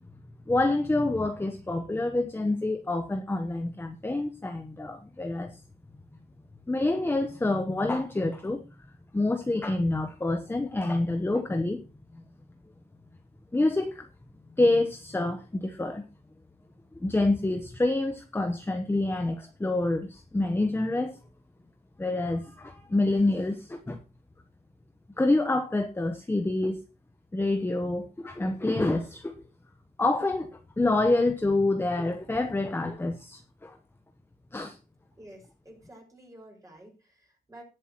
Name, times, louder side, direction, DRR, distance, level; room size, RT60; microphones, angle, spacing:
voice 1, 0.5-5.6 6.7-8.6 9.1-11.8 12.1-12.2 13.5-14.1 14.6-16.0 17.0-21.2 22.0-24.0 25.2-26.8 27.3-29.4 30.0-33.8 34.5-34.8, left 2 dB, 15° left, 7 dB, 0.9 m, -27 dB
voice 2, 35.1-37.6, right 1 dB, 20° right, -1 dB, 5.8 m, -50 dB
18.5 x 7.8 x 3.0 m, 0.30 s
wide cardioid pair, 135°, 16 cm